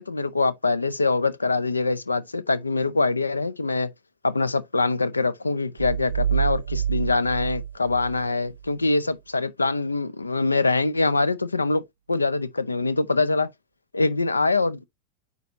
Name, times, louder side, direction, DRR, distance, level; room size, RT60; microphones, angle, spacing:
voice 1, 0.0-3.9 4.2-11.8 12.1-13.5 13.9-14.8, left 3 dB, 80° left, 0.5 m, -24 dB
sound 1, 5.8-8.7, right 9 dB, 65° right, 0.3 m, -27 dB
9.2 x 4.1 x 2.6 m
figure-of-eight pair, 90°, 0 cm